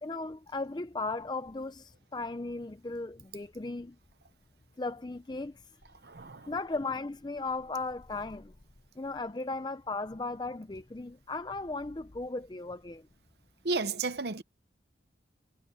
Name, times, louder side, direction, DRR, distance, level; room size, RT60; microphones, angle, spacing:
voice 1, 0.0-4.0 4.8-5.5 6.2-8.5 9.0-13.0, left 3 dB, 25° left, 0.5 m, -36 dB
voice 2, 6.0-6.5 13.6-14.4, right 3 dB, 60° right, 0.9 m, -33 dB
head